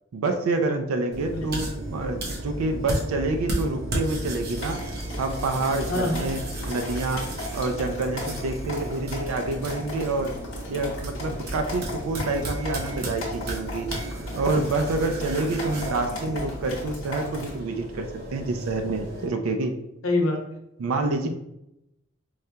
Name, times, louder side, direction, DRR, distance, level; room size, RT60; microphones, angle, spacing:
voice 1, 0.1-6.4 6.7-7.3 7.5-10.3 10.7-13.9 14.4-19.8 20.8-21.3, right 2 dB, 85° right, 5 dB, 0.4 m, -27 dB
sound 1, 1.1-19.3, right 1 dB, 50° right, 0.7 m, -34 dB
sound 2, 4.6-17.6, left 2 dB, 65° left, 1.1 m, -38 dB
voice 2, 5.9-6.3 20.0-20.6 21.2-21.3, left 2 dB, 85° left, 2 dB, 0.7 m, -25 dB
4.6 x 2.7 x 2.2 m, 0.83 s
head